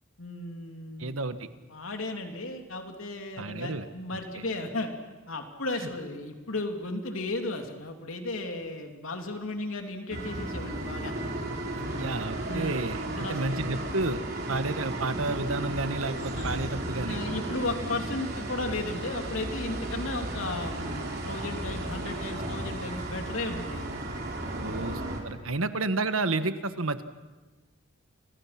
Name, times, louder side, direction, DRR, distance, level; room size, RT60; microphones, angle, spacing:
voice 1, 0.2-1.2 1.7-4.9 5.3-11.1 11.8-12.1 12.5-12.8 13.1-13.6 16.3-16.6 17.0-24.0 24.6-24.9, left 2 dB, 85° left, 4 dB, 3.0 m, -35 dB
voice 2, 1.0-1.5 3.4-3.9 11.8-14.2 14.5-17.2 24.6-27.0, right 3 dB, 90° right, 10 dB, 1.4 m, -31 dB
sound 1, 10.1-25.2, right 1 dB, 50° right, 3.9 m, -34 dB
29.5 x 24.5 x 5.9 m, 1.2 s
head